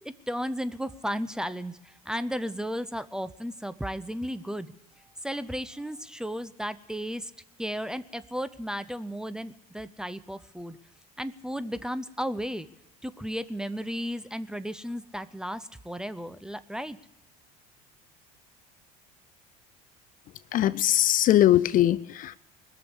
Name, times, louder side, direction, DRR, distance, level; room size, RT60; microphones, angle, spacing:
voice 1, 0.0-4.7 5.2-7.3 7.6-10.8 11.2-12.7 13.0-17.0, equal, 5° right, 14 dB, 0.6 m, -34 dB
voice 2, 20.5-22.4, left 12 dB, 45° left, 17 dB, 0.5 m, -21 dB
21.0 x 6.9 x 9.8 m, 0.89 s
supercardioid pair, 85°, 19 cm